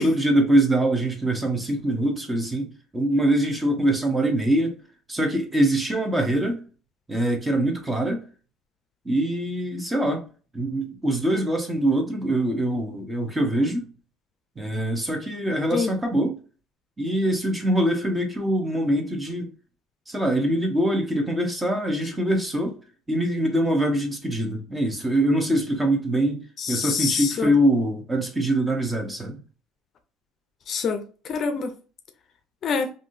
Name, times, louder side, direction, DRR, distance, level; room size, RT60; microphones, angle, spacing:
voice 1, 0.0-4.7 5.1-6.6 7.1-8.3 9.0-10.2 10.5-13.9 14.6-16.4 17.0-19.5 20.1-22.8 23.1-29.4, right 1 dB, 15° right, 0.9 m, -23 dB
voice 2, 26.6-27.5 30.7-31.7 32.6-32.9, left 5 dB, 50° left, 0.5 m, -26 dB
3.4 x 2.6 x 2.6 m
supercardioid pair, 100°, 0 cm